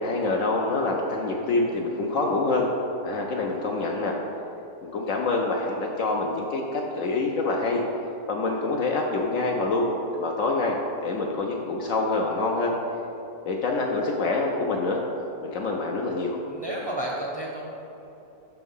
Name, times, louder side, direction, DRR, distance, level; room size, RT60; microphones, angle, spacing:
voice 1, 0.0-2.7 3.0-4.2 4.8-7.8 8.3-9.9 10.2-10.8 11.0-12.7 13.5-15.0 15.4-16.4, left 3 dB, 70° left, 0 dB, 0.9 m, -26 dB
voice 2, 16.5-17.7, right 1 dB, 25° right, -3 dB, 0.6 m, -31 dB
6.1 x 4.6 x 5.4 m, 2.9 s
omnidirectional pair, 1.6 m